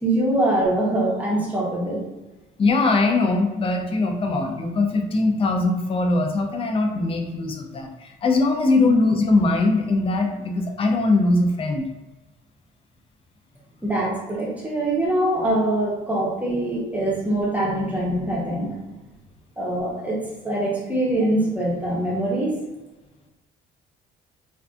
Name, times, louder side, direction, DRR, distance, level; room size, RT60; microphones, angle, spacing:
voice 1, 0.0-2.1 8.8-8.9 13.8-18.8 19.6-20.2 20.4-22.6, right 1 dB, 10° right, -4 dB, 0.7 m, -23 dB
voice 2, 2.6-11.9, left 3 dB, 35° left, 3 dB, 0.4 m, -21 dB
2.5 x 2.3 x 2.3 m, 1.0 s
cardioid pair, 110°, 17 cm